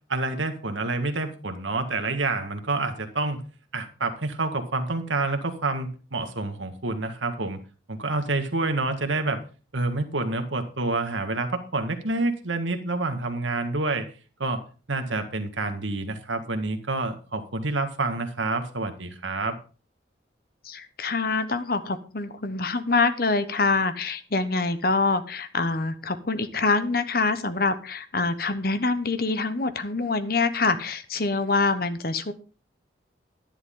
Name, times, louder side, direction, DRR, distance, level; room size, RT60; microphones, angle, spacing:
voice 1, 0.1-3.4 3.7-7.6 7.9-9.4 9.7-14.1 14.4-14.6 14.9-19.6, right 2 dB, 90° right, 7 dB, 1.7 m, -28 dB
voice 2, 20.6-32.3, left 3 dB, 50° left, 11 dB, 1.0 m, -25 dB
11.0 x 10.5 x 3.8 m, 0.35 s
head